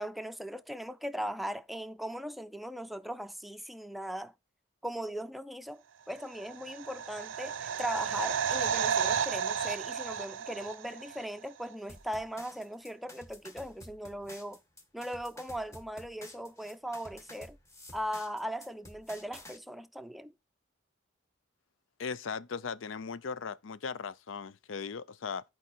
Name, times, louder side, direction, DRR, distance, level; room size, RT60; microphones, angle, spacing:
voice 1, 0.0-4.3 4.8-14.6 14.9-17.6 17.9-20.3, equal, ahead, 0.4 m, -39 dB
sound 1, 6.4-11.2 11.5-11.6, right 7 dB, 85° right, 0.5 m, -32 dB
sound 2, 11.9-19.6, left 1 dB, 15° left, 1.2 m, -51 dB
voice 2, 22.0-25.4, left 5 dB, 85° left, 0.5 m, -38 dB
11.0 x 4.7 x 4.4 m
head